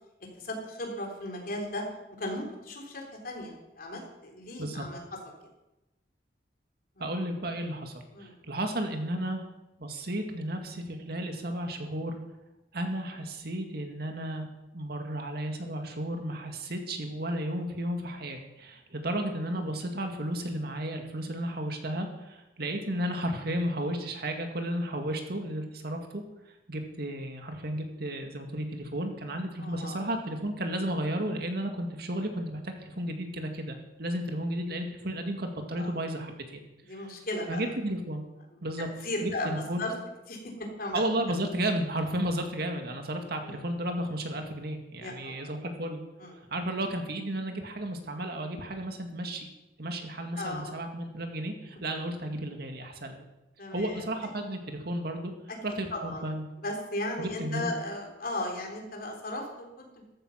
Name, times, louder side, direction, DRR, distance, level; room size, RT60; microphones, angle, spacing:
voice 1, 0.4-1.8 2.2-5.0 7.0-7.1 8.1-8.4 19.5-19.6 29.6-30.1 35.8-35.9 36.8-37.6 39.0-39.9 40.3-41.0 41.9-42.1 43.4-43.6 45.0-45.5 46.2-46.3 50.4-50.7 51.7-51.9 53.6-54.1 54.3-54.4 55.5-55.6 55.9-56.2 56.6-60.0, left 1 dB, 55° left, 1 dB, 3.8 m, -36 dB
voice 2, 7.0-9.4 9.8-12.2 12.7-14.5 14.7-26.2 26.7-36.6 36.9-37.1 37.5-38.2 38.6-38.9 39.2-39.9 40.9-46.0 46.5-49.5 49.8-53.2 53.7-55.3 55.6-56.4 57.2-57.7, right 1 dB, 60° right, 4 dB, 2.2 m, -33 dB
14.5 x 13.0 x 5.9 m, 0.96 s
head